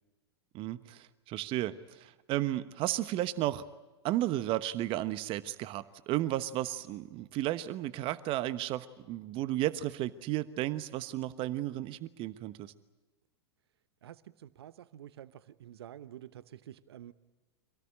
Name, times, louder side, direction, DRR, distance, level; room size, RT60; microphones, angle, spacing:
voice 1, 0.5-3.6 4.0-12.7, right 14 dB, 40° right, 14 dB, 1.2 m, -33 dB
voice 2, 14.0-17.1, right 11 dB, 65° right, 16 dB, 1.0 m, -49 dB
26.0 x 18.0 x 9.9 m, 1.2 s
figure-of-eight pair, 95°, 14 cm